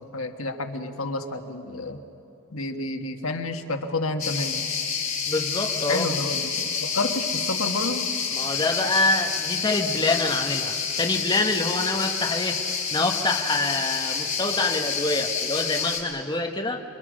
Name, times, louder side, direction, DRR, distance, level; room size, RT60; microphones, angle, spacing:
voice 1, 0.1-2.0 2.5-4.7 5.9-6.5 6.8-8.1, left 2 dB, 80° left, 5 dB, 1.4 m, -29 dB
sound 1, 4.2-16.0, left 6 dB, 40° left, 3.4 m, -28 dB
voice 2, 5.3-6.2 8.3-12.6 12.9-16.8, left 2 dB, 20° left, 3 dB, 1.1 m, -26 dB
27.0 x 24.0 x 6.4 m, 2.7 s
head